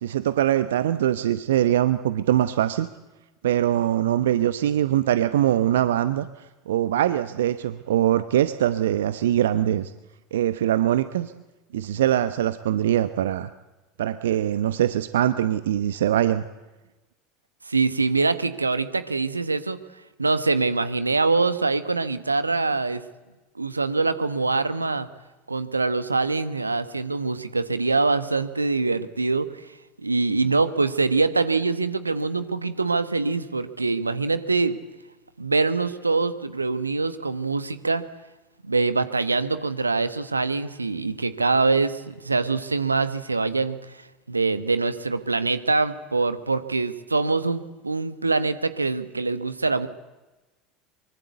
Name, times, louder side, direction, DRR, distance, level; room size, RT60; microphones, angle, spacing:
voice 1, 0.0-2.9 3.4-9.9 10.3-11.3 11.7-13.5 14.0-16.4, right 12 dB, 70° right, 13 dB, 0.8 m, -22 dB
voice 2, 17.7-19.8 20.2-23.0 23.6-25.1 25.5-29.7 30.0-34.8 35.4-38.0 38.6-44.0 44.3-49.9, right 3 dB, 85° right, 13 dB, 1.2 m, -24 dB
24.0 x 23.0 x 8.1 m, 1.1 s
figure-of-eight pair, 75°, 0 cm